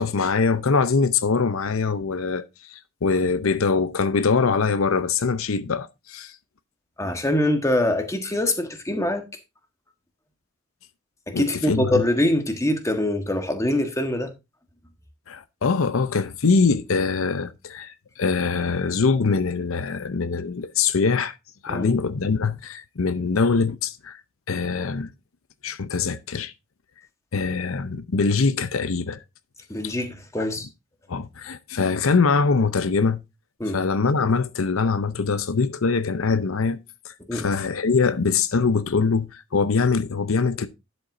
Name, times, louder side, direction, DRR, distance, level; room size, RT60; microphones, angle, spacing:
voice 1, 0.0-6.3 11.3-12.0 15.3-21.4 21.6-24.2 24.5-25.1 25.6-26.5 27.3-29.2 29.8-29.9 30.4-30.5 31.1-33.2 33.7-36.8 37.0-40.7, left 4 dB, 85° left, 0.7 m, -23 dB
voice 2, 7.0-9.3 11.3-14.3 21.7-21.9 29.7-30.7 33.6-33.8 37.3-37.5, left 1 dB, 15° left, 1.4 m, -24 dB
11.5 x 7.8 x 2.6 m
head